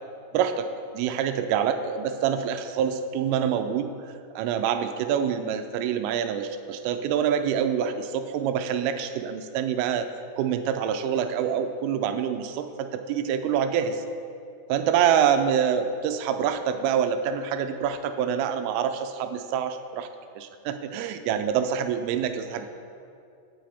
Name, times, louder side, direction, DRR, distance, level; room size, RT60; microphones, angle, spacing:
voice 1, 0.3-0.7 0.9-3.9 4.4-10.1 10.4-14.0 14.7-20.1 20.4-22.7, right 8 dB, 85° right, 8 dB, 3.1 m, -26 dB
17.0 x 8.7 x 3.4 m, 2.4 s
omnidirectional pair, 5.8 m